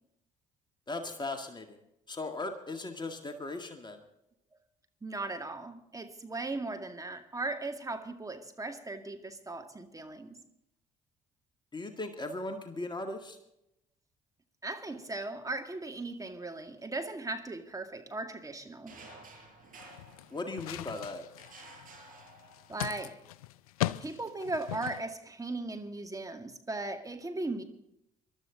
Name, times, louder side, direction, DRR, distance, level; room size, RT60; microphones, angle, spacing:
voice 1, 0.9-1.8 2.1-4.0 11.7-13.4 20.3-21.3, left 2 dB, 25° left, 5 dB, 2.0 m, -38 dB
voice 2, 5.0-10.4 14.6-18.9 22.7-23.2 24.0-27.6, right 2 dB, 20° right, 6 dB, 2.1 m, -38 dB
sound 1, 18.9-20.8 21.4-22.9, right 2 dB, 50° right, 7.1 m, -52 dB
Luggage Movement Foley, 19.8-25.0, left 15 dB, 85° left, 0.5 m, -39 dB
22.0 x 12.5 x 3.9 m, 0.81 s
hypercardioid pair, 55°, 18 cm